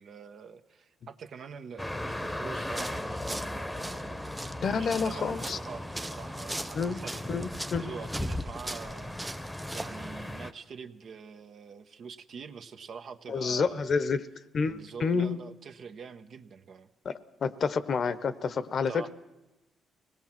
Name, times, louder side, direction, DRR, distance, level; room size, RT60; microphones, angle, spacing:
voice 1, 0.0-4.2 4.8-7.5 7.7-14.0 14.6-16.9 18.9-19.1, right 6 dB, 60° right, 8 dB, 1.1 m, -45 dB
sound 1, 1.8-10.5, left 1 dB, 10° left, 1.0 m, -37 dB
sound 2, 2.7-10.1, right 1 dB, 10° right, 0.6 m, -41 dB
voice 2, 4.6-5.6 6.7-7.0 7.3-7.9 13.3-14.3 14.5-15.4 17.0-19.1, left 5 dB, 50° left, 14 dB, 1.0 m, -29 dB
24.5 x 18.5 x 6.0 m, 1.0 s
cardioid pair, 90°, 0 cm